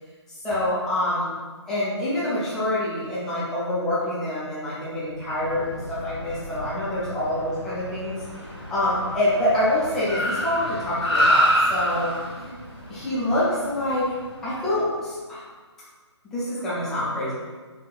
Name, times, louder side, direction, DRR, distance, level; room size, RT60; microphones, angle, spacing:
voice 1, 0.4-1.3 1.7-8.2 8.7-12.1 12.9-14.1 14.4-15.4 16.3-17.3, left 1 dB, 5° left, -11 dB, 0.4 m, -26 dB
Car, 5.2-14.8, equal, 85° left, 1.3 m, -28 dB
4.4 x 2.2 x 2.3 m, 1.4 s
figure-of-eight pair, 145°, 15 cm